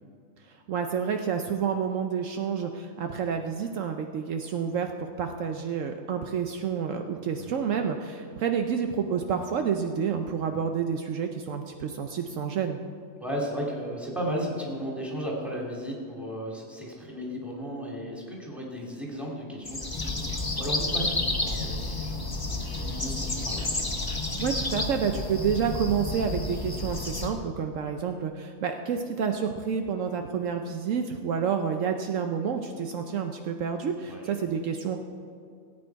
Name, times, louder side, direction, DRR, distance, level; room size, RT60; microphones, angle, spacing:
voice 1, 0.7-12.8 24.4-35.0, right 7 dB, 70° right, 5 dB, 1.0 m, -29 dB
voice 2, 13.2-23.6 34.0-34.3, equal, ahead, -3 dB, 2.5 m, -35 dB
sound 1, 19.6-27.3, left 2 dB, 20° left, 0.9 m, -30 dB
17.5 x 8.8 x 4.7 m, 2.3 s
omnidirectional pair, 1.4 m